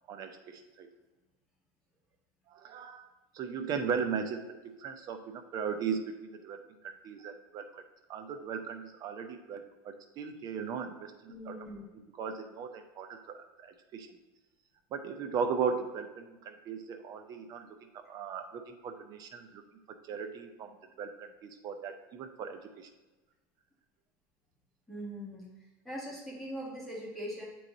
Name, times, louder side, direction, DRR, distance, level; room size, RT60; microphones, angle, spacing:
voice 1, 0.1-0.9 2.5-4.4 4.8-7.8 8.1-11.5 11.9-14.1 14.9-19.6 20.1-22.9, right 6 dB, 35° right, 6 dB, 0.6 m, -37 dB
voice 2, 11.3-11.8 24.9-25.4 25.8-27.4, equal, ahead, -6 dB, 1.7 m, -41 dB
8.1 x 3.1 x 3.9 m, 1.1 s
supercardioid pair, 145°, 11 cm